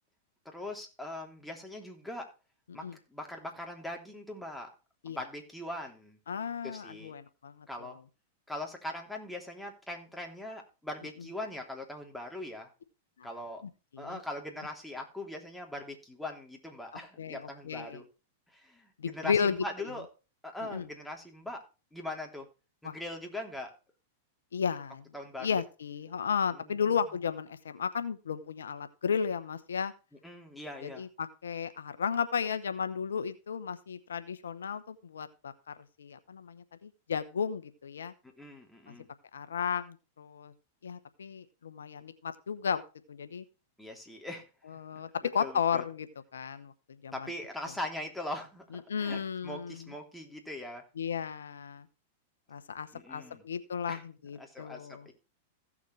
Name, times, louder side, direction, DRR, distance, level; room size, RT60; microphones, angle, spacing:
voice 1, 0.4-2.3 2.7-2.8 3.1-4.7 5.0-6.2 6.6-7.1 7.7-8.0 8.5-12.7 13.2-13.6 14.0-18.1 18.5-20.1 20.4-21.6 21.9-22.5 22.8-23.7 25.1-25.6 26.5-26.8 30.2-31.0 38.4-39.1 43.8-44.4 44.7-44.8 45.4-45.8 47.1-50.8 52.9-53.4 53.9-54.0 54.4-55.1, left 1 dB, 5° left, 1 dB, 3.2 m, -41 dB
voice 2, 6.3-7.9 13.2-13.3 13.9-14.2 17.2-18.0 19.0-19.6 20.7-20.9 22.8-23.0 24.5-25.0 25.4-29.9 30.8-38.1 38.9-39.0 39.3-40.5 40.8-42.8 43.1-43.4 44.7-46.1 46.3-46.7 47.0-47.1 48.9-49.8 51.0-51.9 52.5-55.1, left 6 dB, 85° left, 12 dB, 0.9 m, -34 dB
16.0 x 7.2 x 3.3 m, 0.32 s
hypercardioid pair, 110°, 0 cm